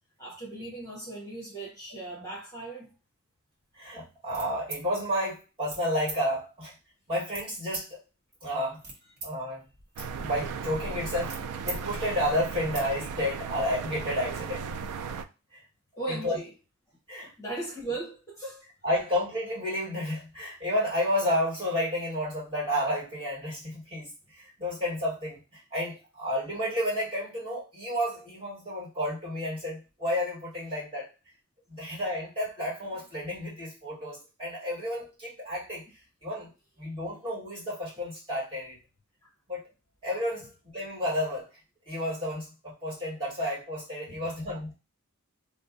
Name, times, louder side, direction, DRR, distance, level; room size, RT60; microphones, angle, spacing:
voice 1, 0.2-2.9 16.0-16.5 17.4-18.6 44.1-44.3, right 2 dB, 15° left, -5 dB, 0.9 m, -38 dB
voice 2, 3.8-6.7 7.1-7.9 8.4-8.8 9.2-9.7 10.2-11.4 11.6-14.7 15.5-15.6 16.1-16.4 17.1-17.3 18.8-24.1 24.4-25.4 25.7-31.1 31.7-35.8 36.2-36.5 36.8-38.8 39.5-39.6 40.0-41.5 41.9-44.7, equal, 25° right, -7 dB, 1.6 m, -31 dB
sound 1, 4.3-4.8 5.6-5.8 6.1-6.2 7.3-7.9 8.5-9.3 9.6-11.8 12.1-12.2 12.5-12.9, right 3 dB, 45° right, 0.9 m, -40 dB
sound 2, 10.0-15.2, right 5 dB, 85° right, 0.3 m, -36 dB
2.6 x 2.0 x 3.8 m, 0.30 s
head